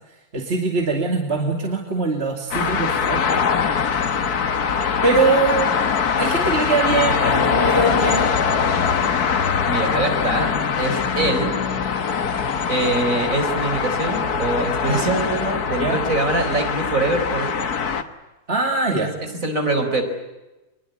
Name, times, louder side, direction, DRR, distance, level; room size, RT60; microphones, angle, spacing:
voice 1, 0.3-3.4 5.0-5.7 6.2-8.3 15.7-16.0 18.5-19.1, right 3 dB, 40° right, 3 dB, 2.8 m, -22 dB
sound 1, 2.5-18.0, left 6 dB, 80° left, 2.0 m, -22 dB
voice 2, 9.6-11.6 12.7-17.8 18.9-19.1 19.4-20.0, right 2 dB, 60° right, 6 dB, 4.8 m, -23 dB
24.5 x 22.0 x 9.5 m, 1.1 s
omnidirectional pair, 1.6 m